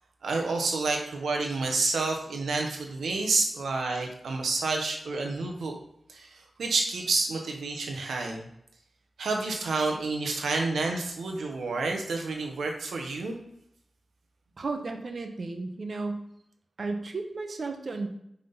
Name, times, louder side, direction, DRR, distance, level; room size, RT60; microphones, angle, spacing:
voice 1, 0.2-5.7 6.1-8.5 9.2-13.4, right 3 dB, 90° right, 2 dB, 1.1 m, -29 dB
voice 2, 14.6-16.3 16.8-18.1, right 3 dB, 60° right, 5 dB, 1.0 m, -34 dB
5.7 x 3.8 x 5.5 m, 0.77 s
cardioid pair, 55°, 0 cm